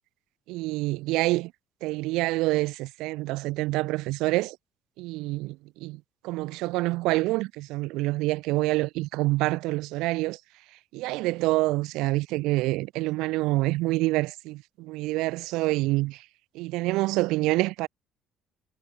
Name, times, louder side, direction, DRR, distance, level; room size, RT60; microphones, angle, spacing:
voice 1, 0.5-1.5 1.8-4.6 5.0-10.4 10.9-16.2 16.5-17.9, right 20 dB, 85° right, 2.2 m, -27 dB
cardioid pair, 150°, 0 cm